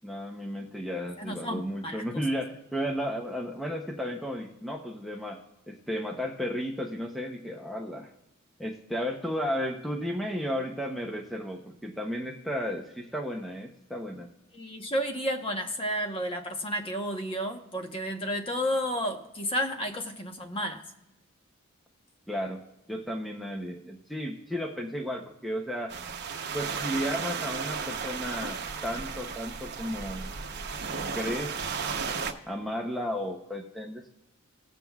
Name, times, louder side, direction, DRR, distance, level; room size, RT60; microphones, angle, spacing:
voice 1, 0.0-5.4 5.7-8.1 8.6-14.3 22.3-22.6 22.9-25.9 26.5-30.3 31.1-31.6 32.5-34.1, equal, ahead, 1 dB, 0.6 m, -33 dB
voice 2, 1.2-2.0 14.5-20.8, equal, 25° left, 4 dB, 0.9 m, -31 dB
sound 1, 25.9-32.3, right 5 dB, 50° right, 0.9 m, -34 dB
18.5 x 7.5 x 2.3 m, 0.97 s
head